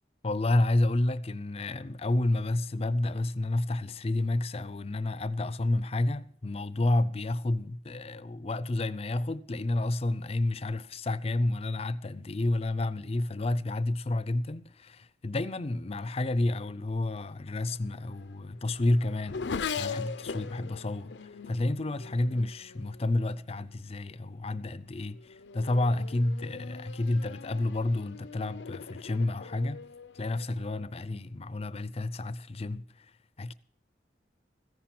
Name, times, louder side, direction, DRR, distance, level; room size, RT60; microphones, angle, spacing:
voice 1, 0.2-19.5 19.8-29.9 30.1-33.1 33.4-33.5, left 2 dB, 35° left, 0.6 m, -30 dB
Race car auto racing / Accelerating revving vroom, 17.6-23.5 24.3-24.7 25.1-31.0, left 5 dB, 85° left, 0.6 m, -41 dB
14.5 x 10.5 x 6.0 m
head